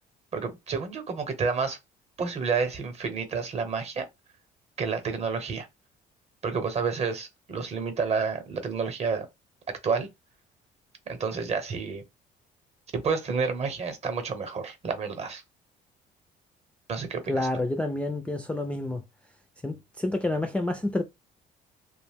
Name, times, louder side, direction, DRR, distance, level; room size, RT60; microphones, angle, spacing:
voice 1, 0.3-1.8 2.2-4.1 4.8-5.7 6.4-9.3 9.8-10.1 11.1-12.0 12.9-15.4 16.9-17.5, right 5 dB, 40° right, 0.8 m, -29 dB
voice 2, 17.3-19.0 19.6-21.0, left 2 dB, 5° left, 0.3 m, -28 dB
2.5 x 2.1 x 3.3 m
cardioid pair, 110°, 17 cm